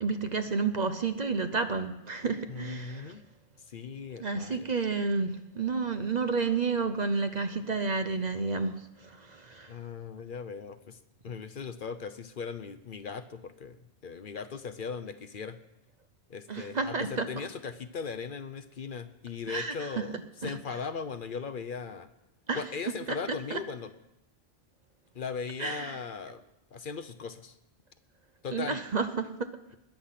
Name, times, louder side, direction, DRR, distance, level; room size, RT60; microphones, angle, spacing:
voice 1, 0.0-3.1 4.2-8.8 9.5-9.7 16.5-17.3 19.5-20.1 20.4-20.5 22.5-22.6 23.1-23.2 23.5-23.6 25.6-26.0 28.5-29.3, right 4 dB, 45° right, 9 dB, 0.8 m, -30 dB
voice 2, 2.5-3.2 3.7-4.7 9.7-11.0 11.2-13.8 14.0-15.6 16.3-22.1 22.5-23.9 25.1-26.4 26.7-27.5 28.4-28.8, left 5 dB, 55° left, 11 dB, 0.9 m, -38 dB
20.5 x 8.1 x 5.8 m, 0.88 s
omnidirectional pair, 1.1 m